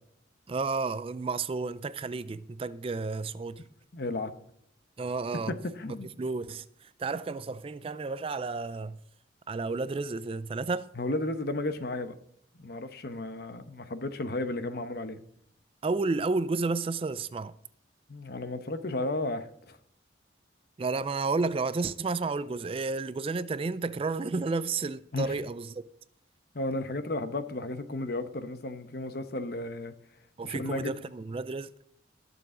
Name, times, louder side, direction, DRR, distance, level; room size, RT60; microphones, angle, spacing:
voice 1, 0.5-3.6 5.0-5.5 6.2-9.0 9.5-10.9 15.8-17.5 20.8-25.9 30.4-31.7, right 3 dB, 30° right, 0.3 m, -31 dB
voice 2, 3.9-4.3 5.3-6.1 10.9-12.1 12.6-15.2 18.1-19.8 25.1-25.4 26.5-29.9 30.4-30.9, left 2 dB, 55° left, 0.9 m, -33 dB
20.0 x 6.8 x 3.8 m
head